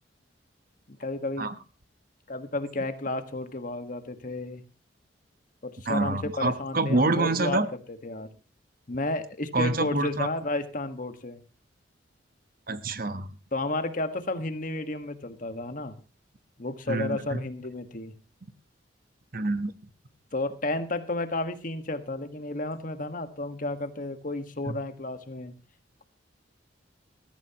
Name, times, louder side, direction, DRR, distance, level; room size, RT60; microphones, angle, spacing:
voice 1, 0.9-1.5 2.3-4.6 5.6-7.6 8.0-8.3 8.9-11.4 13.5-15.9 16.6-18.1 20.3-25.5, left 2 dB, 45° left, 9 dB, 1.5 m, -32 dB
voice 2, 5.9-7.7 9.5-10.3 12.7-13.3 16.9-17.4 19.3-19.7 24.7-24.8, right 2 dB, 50° right, 11 dB, 1.1 m, -26 dB
20.0 x 14.0 x 3.0 m, 0.30 s
head